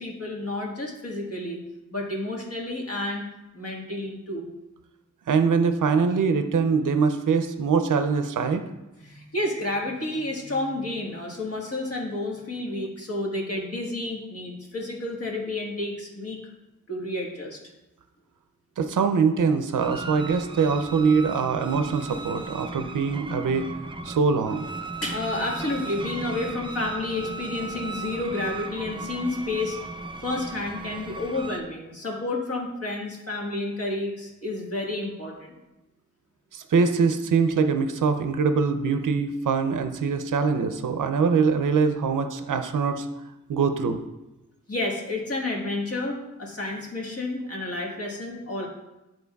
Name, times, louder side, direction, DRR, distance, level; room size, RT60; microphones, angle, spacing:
voice 1, 0.0-1.6 1.9-3.3 3.5-4.5 9.0-16.4 16.9-17.6 25.0-29.8 30.2-35.6 44.7-48.7, left 2 dB, 50° left, -2 dB, 1.4 m, -30 dB
voice 2, 5.3-8.6 18.8-23.7 24.0-24.7 36.5-43.1 43.5-44.0, right 5 dB, 80° right, 8 dB, 0.5 m, -23 dB
sound 1, 19.8-31.6, right 3 dB, 15° right, 0.4 m, -37 dB
11.0 x 4.3 x 2.3 m, 0.98 s
wide cardioid pair, 110°, 31 cm